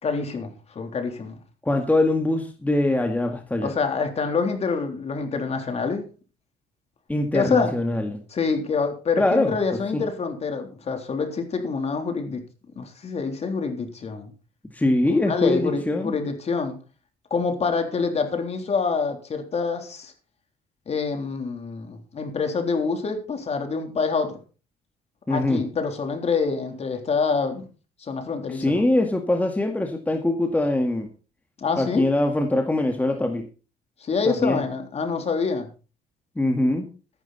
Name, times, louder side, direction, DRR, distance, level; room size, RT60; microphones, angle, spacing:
voice 1, 0.0-0.5 0.8-1.4 3.6-6.0 7.3-7.7 8.3-12.4 12.8-14.3 15.3-16.8 17.3-20.1 20.9-24.4 25.3-27.7 28.0-28.9 31.6-32.1 34.0-35.7, left 5 dB, 40° left, 3.6 m, -26 dB
voice 2, 1.6-3.7 7.1-8.2 9.2-9.5 9.9-10.0 14.7-16.1 25.3-25.6 28.5-31.1 31.8-33.5 34.3-34.6 36.4-36.9, left 1 dB, 10° left, 1.9 m, -23 dB
13.5 x 11.5 x 4.2 m
cardioid pair, 110°, 17 cm